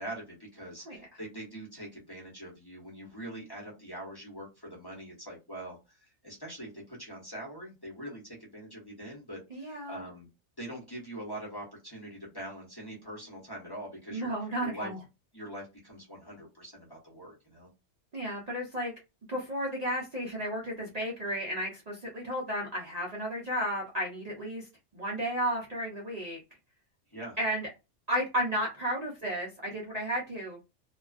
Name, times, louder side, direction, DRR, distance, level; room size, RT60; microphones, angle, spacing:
voice 1, 0.0-10.3 10.6-14.3 14.6-14.9 15.3-17.7 27.1-27.4, right 1 dB, 20° left, -3 dB, 0.8 m, -43 dB
voice 2, 9.5-10.0 14.1-15.0 18.1-18.9 19.3-24.7 24.9-26.4 27.4-27.7 28.1-30.6, equal, 45° right, -3 dB, 0.6 m, -33 dB
2.3 x 2.2 x 2.3 m, 0.26 s
omnidirectional pair, 1.2 m